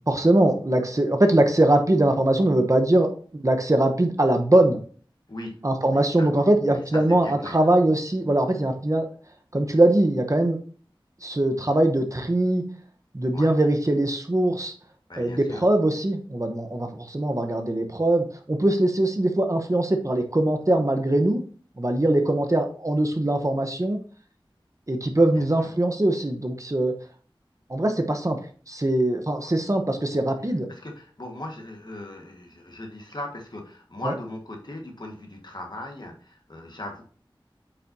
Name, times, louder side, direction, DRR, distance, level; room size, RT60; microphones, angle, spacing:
voice 1, 0.1-4.8 5.6-9.1 9.5-10.6 11.2-12.6 13.1-14.7 15.2-21.4 21.8-24.0 24.9-26.9 27.7-28.4 28.7-30.7, right 1 dB, 35° right, 5 dB, 0.9 m, -22 dB
voice 2, 5.3-5.6 5.9-6.3 6.7-7.7 13.3-13.5 15.1-15.6 25.3-25.4 30.7-37.0, left 1 dB, 55° left, 2 dB, 1.5 m, -38 dB
8.3 x 5.6 x 2.7 m, 0.43 s
wide cardioid pair, 50°, 9 cm